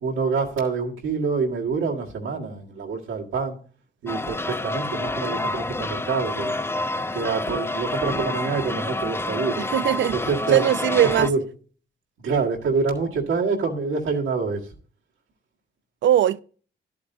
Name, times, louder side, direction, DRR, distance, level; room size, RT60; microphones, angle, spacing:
voice 1, 0.0-3.6 4.0-6.5 7.1-9.6 10.1-10.6 11.2-11.4 12.2-14.6, right 4 dB, 85° right, 1.7 m, -26 dB
sound 1, 4.1-11.3, left 2 dB, 10° left, 0.4 m, -28 dB
voice 2, 9.6-10.2 10.5-11.3 16.0-16.4, right 11 dB, 65° right, 0.4 m, -20 dB
11.0 x 8.3 x 2.7 m
supercardioid pair, 55°, 21 cm